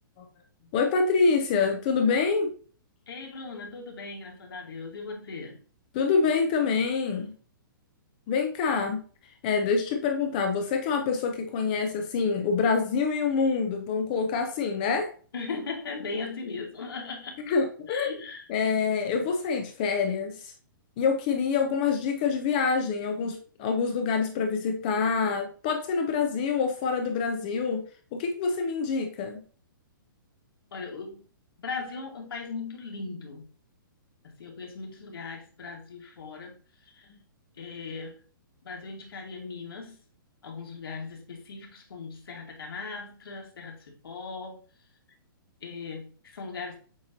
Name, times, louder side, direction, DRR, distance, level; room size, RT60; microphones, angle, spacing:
voice 1, 0.7-2.5 5.9-7.3 8.3-9.0 9.4-15.1 17.4-18.1 18.5-20.5 21.0-29.4, left 5 dB, 20° left, 4 dB, 0.4 m, -26 dB
voice 2, 3.1-5.6 15.3-17.4 17.9-18.5 30.7-31.2 31.6-33.5 34.2-36.6 36.8-37.1 37.6-38.2 38.6-40.0 40.4-44.6 45.6-46.8, left 4 dB, 90° left, 1 dB, 1.5 m, -38 dB
7.2 x 2.7 x 2.7 m, 0.41 s
hypercardioid pair, 170°, 12 cm